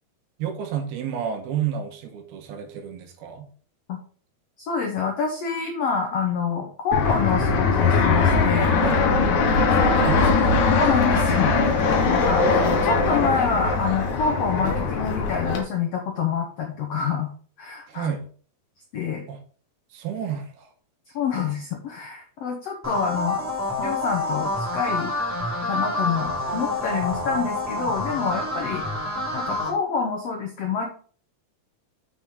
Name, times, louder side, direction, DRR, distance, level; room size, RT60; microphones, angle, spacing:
voice 1, 0.4-3.5 8.8-9.0 9.7-10.6 17.9-18.3 19.3-19.4 19.9-20.7, right 8 dB, 80° right, 5 dB, 3.1 m, -30 dB
voice 2, 4.6-8.7 10.8-12.5 12.8-17.3 17.6-18.1 18.9-19.2 21.1-23.5 23.8-25.2 25.6-28.8 29.3-30.9, left 6 dB, 80° left, 2 dB, 1.4 m, -27 dB
Fixed-wing aircraft airplane, 6.9-15.6, left 4 dB, 60° left, 2.3 m, -20 dB
sound 1, 22.8-29.7, left 2 dB, 5° right, 2.5 m, -28 dB
7.5 x 6.0 x 3.7 m, 0.43 s
omnidirectional pair, 4.4 m